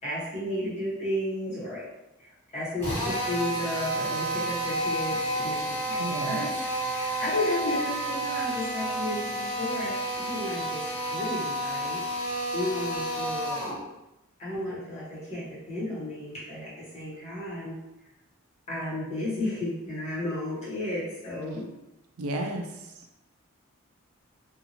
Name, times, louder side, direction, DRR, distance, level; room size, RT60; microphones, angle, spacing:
voice 1, 0.0-1.9 2.2-12.0 12.5-13.7 14.4-17.8 18.7-21.7, left 1 dB, 35° left, -8 dB, 1.2 m, -33 dB
Drill, 2.8-13.8, right 1 dB, 10° left, 1.2 m, -30 dB
voice 2, 6.0-6.5 22.2-22.7, right 1 dB, 90° right, 4 dB, 0.4 m, -31 dB
2.7 x 2.6 x 2.8 m, 0.91 s
head